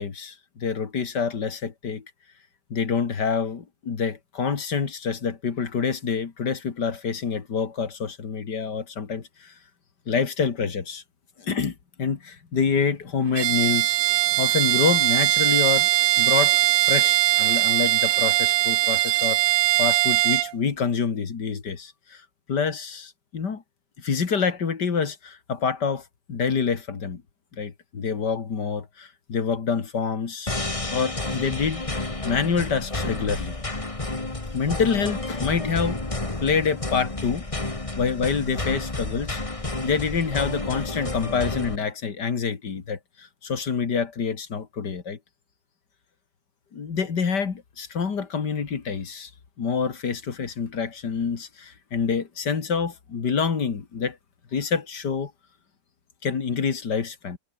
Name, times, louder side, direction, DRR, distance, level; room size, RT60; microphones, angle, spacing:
voice 1, 0.0-2.0 2.7-9.5 10.1-11.0 11.4-14.0 14.3-15.9 16.2-22.2 22.5-23.6 24.0-26.0 26.3-27.2 27.6-30.6 30.9-33.6 34.5-37.4 38.0-39.4 39.8-45.2 46.7-49.3 49.6-54.2 54.5-55.3 56.2-57.4, left 6 dB, 65° left, 2.8 m, -27 dB
Bowed string instrument, 13.3-20.5, right 15 dB, 75° right, 1.3 m, -21 dB
sound 1, 30.5-41.8, left 2 dB, 20° left, 2.1 m, -30 dB
omnidirectional pair, 2.0 m